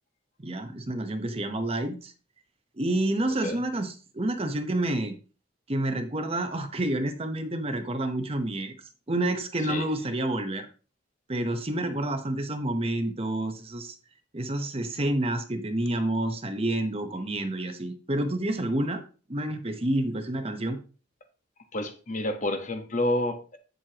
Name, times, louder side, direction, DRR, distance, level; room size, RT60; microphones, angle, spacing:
voice 1, 0.4-2.1 2.8-5.2 5.7-8.7 9.1-10.7 11.3-13.9 14.3-19.0 19.3-20.8, right 1 dB, 30° right, 7 dB, 0.9 m, -29 dB
voice 2, 21.7-23.6, left 1 dB, 40° left, 6 dB, 1.3 m, -29 dB
9.5 x 7.6 x 2.9 m, 0.35 s
head